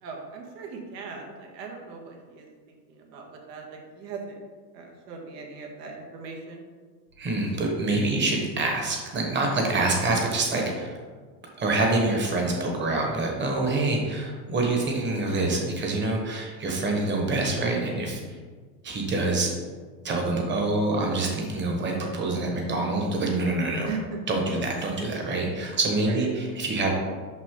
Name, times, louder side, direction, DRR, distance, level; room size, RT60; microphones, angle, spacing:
voice 1, 0.0-4.4 4.7-6.6 23.8-24.2 24.5-24.6 26.0-26.3, right 5 dB, 75° right, 1 dB, 1.7 m, -39 dB
voice 2, 7.2-11.0 11.6-18.2 18.8-19.5 20.0-23.9 24.3-26.9, right 2 dB, 20° right, 1 dB, 1.3 m, -26 dB
6.1 x 5.5 x 3.8 m, 1.5 s
supercardioid pair, 135°, 50 cm